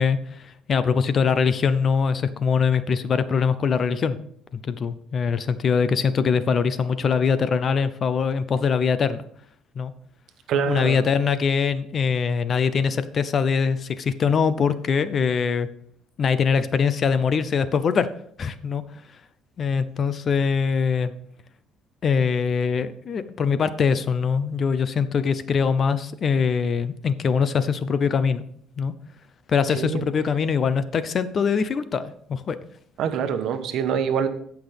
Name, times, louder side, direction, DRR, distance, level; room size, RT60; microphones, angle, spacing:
voice 1, 0.0-4.2 4.5-9.2 9.8-9.9 10.7-15.7 16.2-18.1 18.4-18.8 19.6-21.1 22.0-28.4 28.8-28.9 29.5-32.6, left 6 dB, 40° left, 13 dB, 0.6 m, -22 dB
voice 2, 10.5-11.0 29.7-30.1 33.0-34.3, right 7 dB, 65° right, 8 dB, 1.1 m, -25 dB
17.0 x 5.9 x 3.5 m, 0.64 s
cardioid pair, 130°, 0 cm